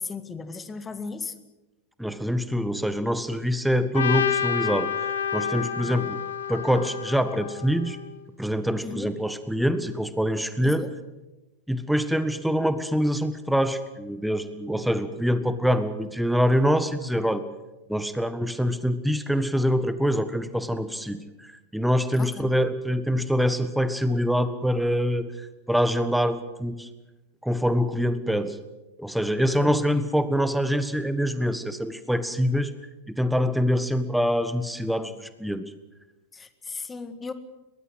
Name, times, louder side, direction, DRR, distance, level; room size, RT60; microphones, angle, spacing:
voice 1, 0.0-1.3 5.8-6.1 8.8-9.1 10.6-10.9 22.2-22.6 29.6-29.7 36.3-37.3, left 4 dB, 15° left, 12 dB, 1.8 m, -36 dB
voice 2, 2.0-4.9 5.3-6.2 6.5-8.0 8.4-10.9 11.7-17.4 17.9-26.9 27.4-28.6 29.0-32.7 33.1-35.7, equal, ahead, 12 dB, 1.5 m, -25 dB
Trumpet, 3.9-8.1, left 7 dB, 65° left, 1.5 m, -29 dB
22.5 x 20.0 x 8.0 m, 1.1 s
figure-of-eight pair, 90°, 0 cm